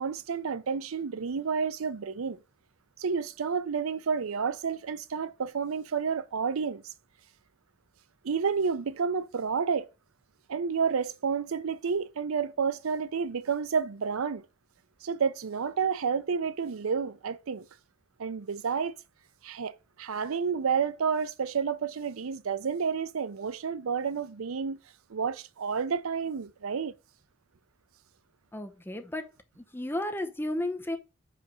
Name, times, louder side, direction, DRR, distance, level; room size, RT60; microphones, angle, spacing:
voice 1, 0.0-2.4 3.0-6.8 8.2-9.9 10.5-14.5 15.0-17.7 18.2-18.9 19.4-24.8 25.1-26.9, right 6 dB, 80° right, 0.5 m, -30 dB
voice 2, 28.5-29.3 29.6-31.0, left 1 dB, 10° left, 0.7 m, -33 dB
5.0 x 4.8 x 6.2 m
head